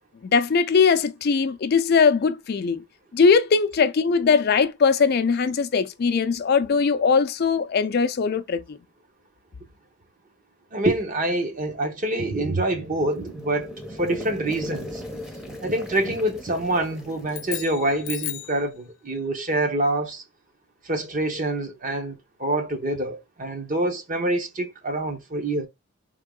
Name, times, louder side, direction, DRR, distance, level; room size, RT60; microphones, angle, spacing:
voice 1, 0.2-2.8 3.1-8.8, left 5 dB, 50° left, 0.4 m, -20 dB
voice 2, 10.7-15.0 15.4-20.2 20.8-25.7, right 1 dB, 40° right, 0.9 m, -26 dB
sound 1, 12.5-18.5, left 1 dB, 5° right, 0.7 m, -39 dB
sound 2, 17.3-18.6, left 14 dB, 75° left, 0.7 m, -34 dB
3.6 x 2.9 x 3.7 m
head